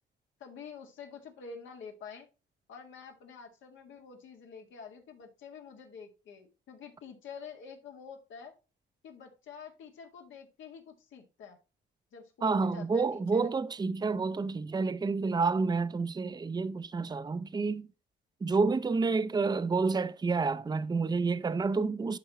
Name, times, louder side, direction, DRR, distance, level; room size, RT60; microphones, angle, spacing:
voice 1, 0.4-2.3 2.7-8.5 9.0-11.6 12.1-13.5, left 6 dB, 75° left, 2.1 m, -48 dB
voice 2, 12.4-17.9 18.4-22.2, right 4 dB, 20° right, 0.6 m, -29 dB
11.0 x 4.3 x 3.0 m
cardioid pair, 90°, 20 cm